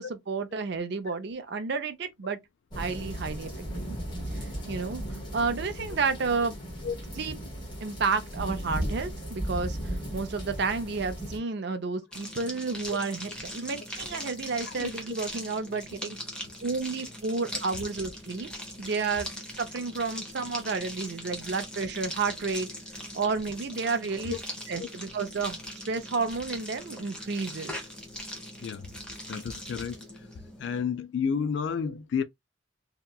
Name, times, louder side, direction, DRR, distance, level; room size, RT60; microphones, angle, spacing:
voice 1, 0.0-2.4 2.8-3.5 4.3-5.0 5.3-6.6 7.2-7.4 7.8-16.2 16.6-18.5 18.8-19.3 19.6-22.7 23.1-24.3 24.7-25.6 25.9-27.7, right 4 dB, 55° right, 0.5 m, -31 dB
sound 1, 2.7-11.4, equal, 20° left, 1.2 m, -36 dB
sound 2, 12.1-30.8, equal, 5° left, 0.6 m, -40 dB
voice 2, 29.3-30.0 30.6-32.2, left 6 dB, 65° left, 0.3 m, -31 dB
2.8 x 2.2 x 2.2 m
head